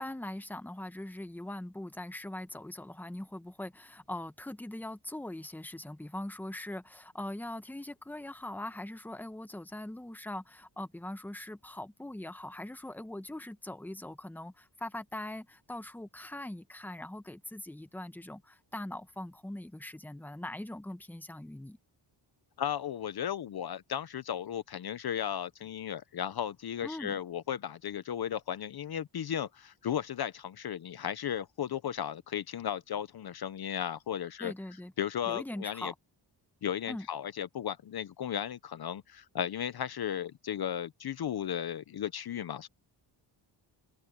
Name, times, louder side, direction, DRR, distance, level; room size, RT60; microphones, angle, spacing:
voice 1, 0.0-21.8 26.8-27.1 34.4-34.9 35.3-35.9 36.9-37.1, left 1 dB, 5° left, 1.0 m, -41 dB
voice 2, 22.6-34.5 35.0-35.9 36.6-42.7, left 9 dB, 55° left, 0.7 m, -35 dB
wide cardioid pair, 140°, 45 cm